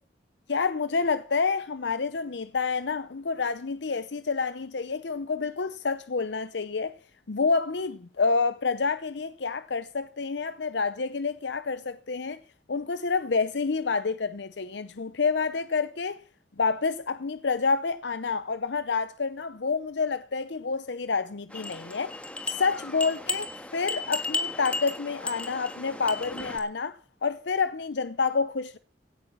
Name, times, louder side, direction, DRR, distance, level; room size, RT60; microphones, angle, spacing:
voice 1, 0.5-7.0 7.3-12.4 12.7-16.2 16.6-22.2 22.6-23.5 23.7-28.8, left 4 dB, 70° left, 0.7 m, -28 dB
sound 1, 21.5-26.6, left 3 dB, 5° left, 1.6 m, -34 dB
17.0 x 9.9 x 6.1 m
head